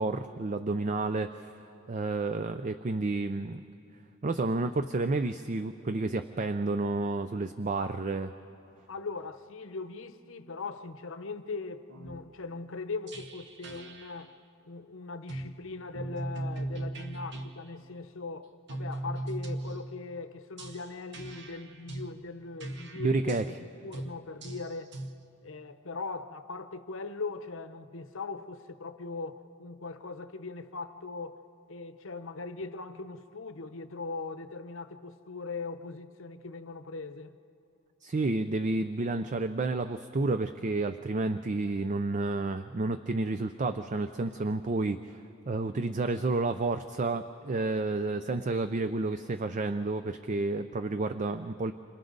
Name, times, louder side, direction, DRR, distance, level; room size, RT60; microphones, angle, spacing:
voice 1, 0.0-1.5 1.9-3.6 4.2-8.3 23.0-23.4 38.0-51.7, right 3 dB, 35° right, 0.4 m, -30 dB
voice 2, 8.9-14.4 14.7-25.0 25.4-31.4 31.7-37.4, left 3 dB, 65° left, 0.8 m, -40 dB
sound 1, 11.9-12.3 13.1-14.3 15.3-15.5 15.9-17.5 18.7-20.0 20.6-22.1 22.6-23.5 23.9-24.1 24.4-25.1, right 1 dB, 55° right, 1.1 m, -38 dB
29.0 x 26.0 x 4.0 m
head